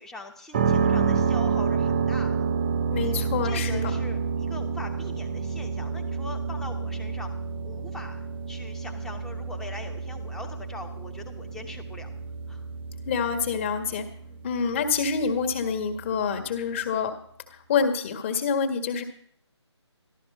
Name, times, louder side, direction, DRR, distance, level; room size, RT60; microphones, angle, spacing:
voice 1, 0.0-2.5 3.0-3.1 3.4-7.3 7.6-12.1 12.5-12.7 14.3-14.4, left 2 dB, 5° left, 4 dB, 0.9 m, -42 dB
sound 1, 0.5-16.4, right 5 dB, 20° right, 0.6 m, -29 dB
voice 2, 2.9-3.9 13.1-14.1 14.4-17.1 17.5-19.0, left 6 dB, 25° left, 6 dB, 1.7 m, -27 dB
14.0 x 12.5 x 5.5 m, 0.64 s
figure-of-eight pair, 155°, 15 cm